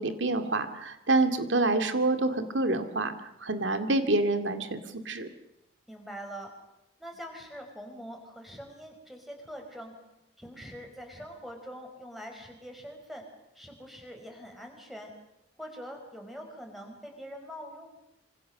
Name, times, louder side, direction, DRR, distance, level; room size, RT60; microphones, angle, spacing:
voice 1, 0.0-3.1 3.4-4.8 5.1-5.3, right 2 dB, 85° right, 8 dB, 2.2 m, -27 dB
voice 2, 5.9-6.5 7.0-9.9 10.4-13.2 13.5-15.1 15.6-17.9, equal, ahead, 3 dB, 5.1 m, -44 dB
26.0 x 25.5 x 6.7 m, 0.88 s
head